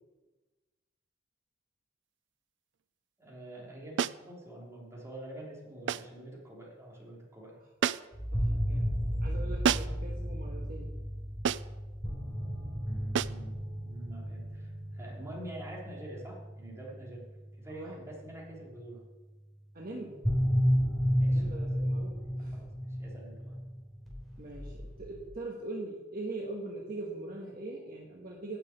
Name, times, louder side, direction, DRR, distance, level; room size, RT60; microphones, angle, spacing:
voice 1, 3.2-7.6 12.8-13.5 13.8-17.2 17.6-19.0 20.9-21.4 22.5-22.7 23.0-23.6, right 1 dB, 15° right, -4 dB, 3.4 m, -46 dB
sound 1, 4.0-4.3 5.9-6.2 7.8-8.2 9.6-10.1 11.4-11.8 13.1-13.5, right 8 dB, 75° right, 0.4 m, -30 dB
sound 2, 8.1-18.3 20.2-25.3, equal, ahead, 3.7 m, -33 dB
voice 2, 8.3-10.9 17.7-18.0 19.7-20.2 21.3-22.6 24.4-28.6, right 2 dB, 50° right, -2 dB, 1.5 m, -42 dB
9.9 x 6.6 x 8.9 m, 1.2 s
head